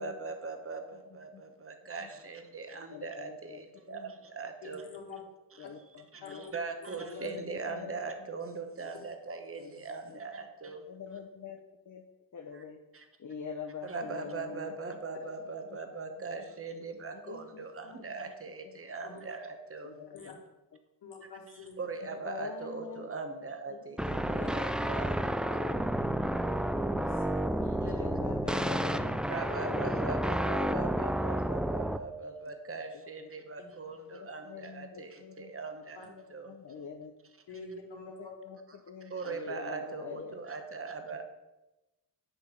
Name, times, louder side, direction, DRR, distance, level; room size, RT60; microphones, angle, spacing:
voice 1, 0.0-4.8 6.1-10.8 12.5-12.6 12.9-13.1 13.8-20.3 21.8-25.5 29.3-36.5 39.1-41.2, right 4 dB, 30° right, 6 dB, 1.1 m, -40 dB
voice 2, 0.9-1.4 2.0-2.1 2.9-4.1 5.6-6.5 7.0-8.3 9.6-10.2 10.9-11.6 11.9-12.0 12.3-12.8 13.2-14.8 15.7-15.8 17.1-18.3 18.6-18.8 19.8-20.4 22.0-23.1 23.7-23.8 24.4-24.5 25.6-26.1 27.0-27.1 27.6-29.2 29.6-30.9 32.2-32.3 33.2-33.3 34.1-35.5 36.1-37.1 38.1-40.4, left 6 dB, 45° left, 3 dB, 0.8 m, -45 dB
voice 3, 4.6-5.2 6.2-6.6 6.8-7.3 19.0-19.2 20.1-20.4 21.0-21.8 24.3-24.5 24.8-24.9 25.4-25.6 26.7-27.5 29.4-30.0 33.6-33.7 35.9-36.1 37.5-38.4, left 3 dB, 70° left, 1 dB, 1.8 m, -47 dB
sound 1, 24.0-32.0, right 1 dB, ahead, 0.4 m, -31 dB
9.0 x 3.4 x 6.4 m, 1.0 s
cardioid pair, 55°, 42 cm